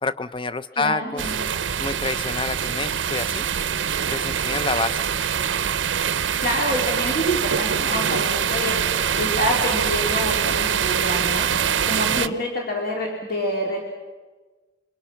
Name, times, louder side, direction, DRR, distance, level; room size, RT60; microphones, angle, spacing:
voice 1, 0.0-1.3 1.8-3.4 4.1-5.0 12.1-12.4, left 3 dB, 25° left, 14 dB, 0.6 m, -28 dB
voice 2, 0.7-1.4 6.4-11.5 11.9-13.8, equal, 55° left, -1 dB, 3.5 m, -27 dB
sound 1, 1.2-12.3, right 8 dB, 80° right, 0.6 m, -24 dB
26.5 x 24.0 x 5.8 m, 1.3 s
head